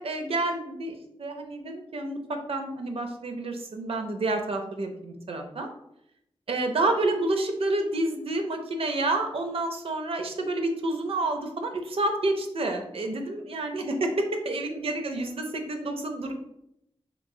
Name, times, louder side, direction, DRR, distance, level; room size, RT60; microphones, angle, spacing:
voice 1, 0.0-5.7 6.5-16.3, right 2 dB, 75° right, 4 dB, 0.5 m, -29 dB
3.0 x 3.0 x 2.6 m, 0.79 s
wide cardioid pair, 80°, 10 cm